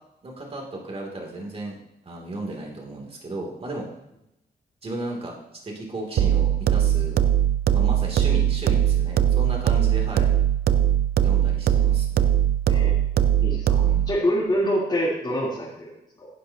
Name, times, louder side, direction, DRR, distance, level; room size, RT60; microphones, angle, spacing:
voice 1, 0.2-1.8 2.0-3.9 4.8-5.3 5.6-7.2 7.7-10.3 11.2-12.3 13.8-14.2, right 2 dB, 35° right, 0 dB, 3.0 m, -34 dB
sound 1, 6.2-14.2, right 10 dB, 70° right, 0.6 m, -21 dB
voice 2, 12.7-13.0 13.4-16.3, equal, 25° left, -8 dB, 3.6 m, -26 dB
17.0 x 10.5 x 3.0 m, 0.86 s
wide cardioid pair, 135°, 17 cm